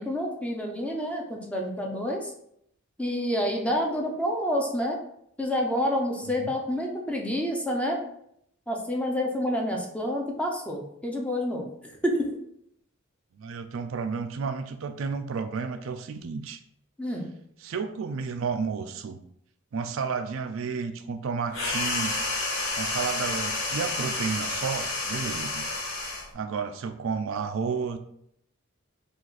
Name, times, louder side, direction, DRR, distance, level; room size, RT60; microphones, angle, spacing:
voice 1, 0.0-2.3 3.0-5.0 5.4-8.1 8.7-12.3 17.0-17.3, equal, 5° left, 0 dB, 0.7 m, -28 dB
voice 2, 13.4-16.6 17.6-19.2 19.7-22.2 22.8-25.7 26.3-28.0, right 5 dB, 70° right, 8 dB, 0.4 m, -32 dB
sound 1, 21.5-26.3, left 2 dB, 80° left, 1.1 m, -30 dB
4.9 x 2.5 x 4.0 m, 0.72 s
head